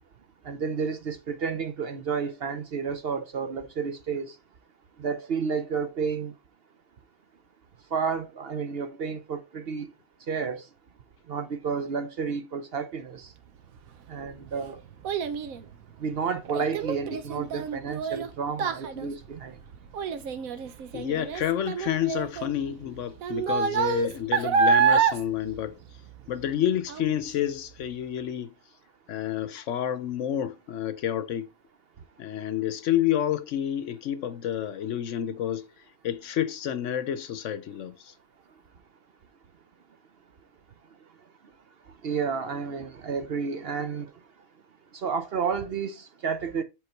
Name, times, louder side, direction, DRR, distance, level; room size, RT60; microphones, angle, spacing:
voice 1, 0.5-4.3 5.0-6.3 7.9-9.9 10.3-10.6 11.3-13.3 14.1-14.8 16.0-19.5 42.0-44.1 45.0-46.6, right 6 dB, 55° right, 0.8 m, -31 dB
Child speech kid speaking, 13.9-26.5 26.9-27.3 27.8-27.9, right 6 dB, 85° right, 1.2 m, -28 dB
voice 2, 20.9-25.8 26.3-28.5 29.1-31.5 32.2-35.7 36.0-38.1, left 10 dB, 70° left, 0.9 m, -29 dB
8.0 x 3.7 x 4.4 m
omnidirectional pair, 1.4 m